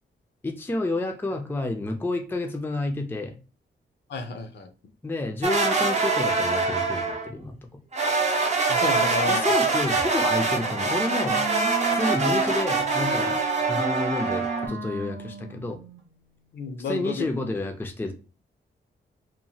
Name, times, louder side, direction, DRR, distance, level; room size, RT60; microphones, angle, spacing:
voice 1, 0.4-3.4 5.0-7.6 9.2-11.5 11.9-15.8 16.8-18.1, left 2 dB, 10° left, 4 dB, 0.4 m, -30 dB
voice 2, 4.1-4.7 8.7-9.5 16.5-17.3, left 4 dB, 65° left, 6 dB, 0.5 m, -31 dB
sound 1, 5.4-7.3 7.9-14.7, right 3 dB, 35° right, 0.6 m, -24 dB
Wind instrument woodwind instrument, 10.2-16.1, right 3 dB, 75° right, 0.7 m, -33 dB
2.9 x 2.1 x 2.7 m, 0.33 s
cardioid pair, 105°, 19 cm